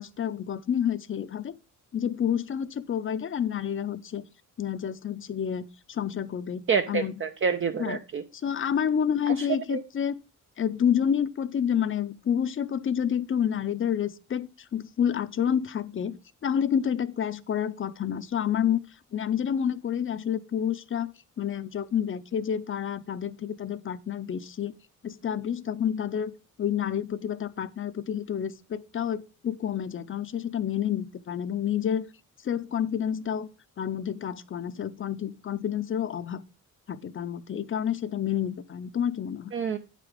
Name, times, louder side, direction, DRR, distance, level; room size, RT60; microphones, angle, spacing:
voice 1, 0.0-1.5 1.9-4.2 4.6-6.6 6.9-7.1 7.8-8.0 8.4-10.2 10.6-18.8 19.1-21.1 21.4-24.7 25.0-26.3 26.6-32.0 32.4-33.5 33.8-36.4 36.9-39.5, left 8 dB, 40° left, 0.6 m, -29 dB
voice 2, 6.7-8.2 9.7-9.8 39.5-39.8, right 6 dB, 40° right, 0.6 m, -27 dB
8.6 x 5.0 x 5.0 m
cardioid pair, 115°, 32 cm